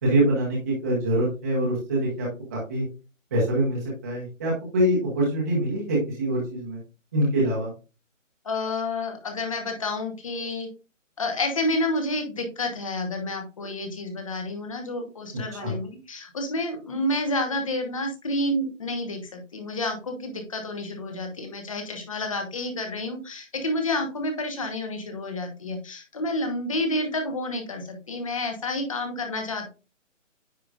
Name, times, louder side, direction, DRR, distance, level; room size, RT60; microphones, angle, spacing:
voice 1, 0.0-2.8 3.3-6.8 7.1-7.7 15.6-15.8, right 1 dB, 10° right, -5 dB, 1.0 m, -24 dB
voice 2, 8.4-10.7 11.2-29.7, left 1 dB, 25° left, 5 dB, 1.1 m, -29 dB
9.4 x 5.0 x 2.4 m, 0.32 s
hypercardioid pair, 170°, 39 cm